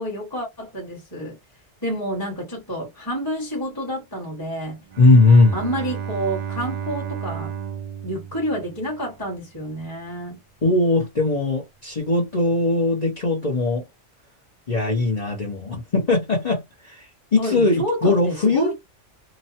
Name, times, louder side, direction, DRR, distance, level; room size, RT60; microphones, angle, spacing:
voice 1, 0.0-1.4 1.8-4.8 5.5-7.5 8.0-10.4 17.4-18.7, equal, 20° left, 1.3 m, -29 dB
Bowed string instrument, 4.9-9.2, right 8 dB, 65° right, 0.4 m, -33 dB
voice 2, 5.0-5.6 10.6-13.8 14.7-16.6 16.9-17.0 17.3-18.7, left 2 dB, 35° left, 1.0 m, -19 dB
3.0 x 2.2 x 2.8 m
omnidirectional pair, 1.2 m